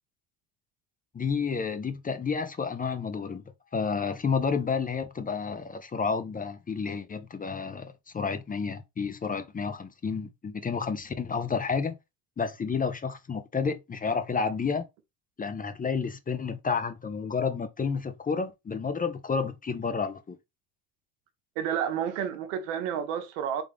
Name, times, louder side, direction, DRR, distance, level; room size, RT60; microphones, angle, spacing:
voice 1, 1.1-3.4 3.7-12.0 12.4-14.9 15.4-20.4, left 5 dB, 20° left, 0.5 m, -30 dB
voice 2, 21.6-23.6, right 9 dB, 85° right, 0.9 m, -30 dB
3.6 x 3.5 x 3.4 m
supercardioid pair, 80°, 43 cm